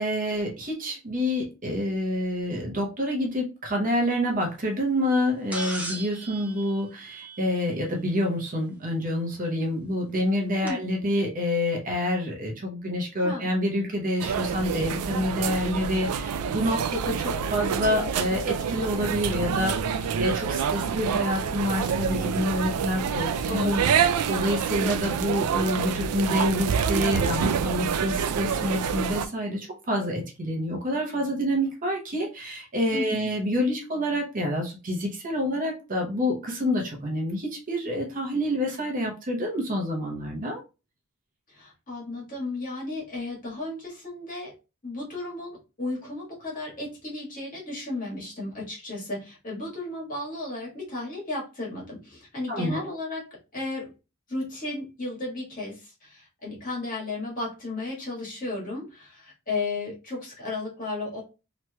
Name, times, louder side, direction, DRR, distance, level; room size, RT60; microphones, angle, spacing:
voice 1, 0.0-40.6 52.5-52.8, left 1 dB, 40° right, 0 dB, 0.8 m, -27 dB
sound 1, 5.5-7.8 9.4-9.5 10.7-10.8, right 2 dB, 5° right, 0.6 m, -37 dB
sound 2, 14.2-29.3, right 7 dB, 90° right, 0.3 m, -27 dB
voice 2, 23.5-23.8 32.9-33.3 41.5-44.5 44.8-53.2 53.5-53.9 54.3-61.2, left 2 dB, 40° left, -5 dB, 1.5 m, -34 dB
3.0 x 3.0 x 2.2 m, 0.29 s
head